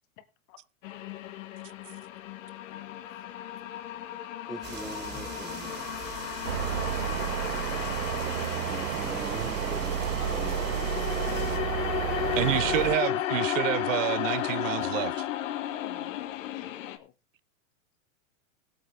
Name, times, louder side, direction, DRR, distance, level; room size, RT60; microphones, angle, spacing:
sound 1, 0.8-17.0, left 12 dB, 65° left, 1.4 m, -34 dB
voice 1, 2.6-3.4 10.2-11.7 12.3-12.9 15.8-17.1, left 13 dB, 40° left, 1.6 m, -49 dB
voice 2, 4.5-6.0 8.7-10.9, equal, ahead, 0.5 m, -42 dB
sound 2, 4.6-11.6, right 4 dB, 25° right, 2.3 m, -42 dB
sound 3, 6.4-12.9, right 9 dB, 85° right, 1.3 m, -31 dB
voice 3, 12.4-15.2, right 15 dB, 65° right, 0.5 m, -28 dB
17.0 x 7.8 x 3.3 m
supercardioid pair, 145°, 41 cm